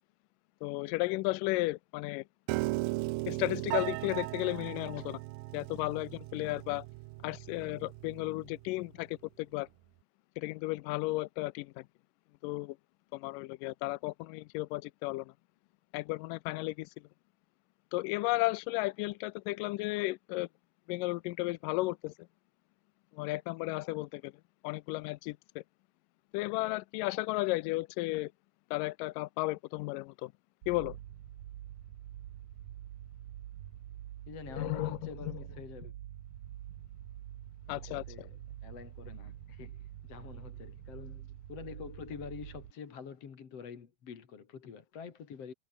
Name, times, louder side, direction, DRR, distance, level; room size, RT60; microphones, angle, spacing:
voice 1, 0.6-2.2 3.3-5.2 5.5-6.9 7.2-9.7 10.4-11.8 12.4-12.8 13.1-15.3 15.9-16.9 17.9-20.5 20.9-22.1 23.1-24.3 24.6-25.6 26.3-28.3 28.7-30.3 30.7-31.0 34.6-35.4 37.7-38.0, left 20 dB, 80° left, 2.1 m, -34 dB
Piano, 2.5-8.7, right 22 dB, 85° right, 2.3 m, -37 dB
sound 1, 30.6-42.7, right 12 dB, 65° right, 2.4 m, -46 dB
voice 2, 34.3-35.9 37.7-45.5, left 6 dB, 45° left, 3.1 m, -47 dB
omnidirectional pair, 4.1 m